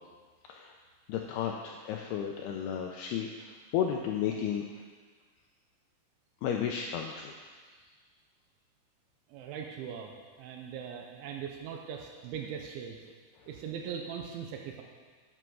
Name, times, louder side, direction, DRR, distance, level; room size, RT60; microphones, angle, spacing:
voice 1, 0.4-0.7 1.1-4.6 6.4-7.4 13.4-13.5, left 8 dB, 85° left, 2 dB, 2.3 m, -33 dB
voice 2, 9.3-13.0 13.5-14.8, right 7 dB, 85° right, 2 dB, 3.3 m, -40 dB
9.2 x 9.1 x 6.2 m, 1.5 s
omnidirectional pair, 5.4 m